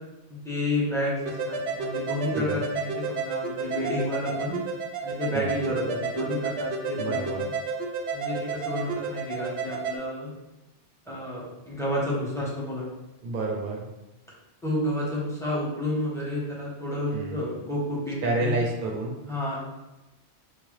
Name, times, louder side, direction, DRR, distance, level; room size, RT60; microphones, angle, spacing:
voice 1, 0.3-4.6 5.0-7.5 8.1-10.3 11.1-12.8 14.6-18.6 19.3-19.6, left 1 dB, 5° left, -7 dB, 0.9 m, -30 dB
sound 1, 1.3-10.0, right 4 dB, 90° right, 0.9 m, -31 dB
voice 2, 7.0-7.4 13.2-13.9 17.1-17.4 18.2-19.2, right 2 dB, 55° right, 0 dB, 0.7 m, -29 dB
3.9 x 2.0 x 3.1 m, 0.97 s
omnidirectional pair, 1.1 m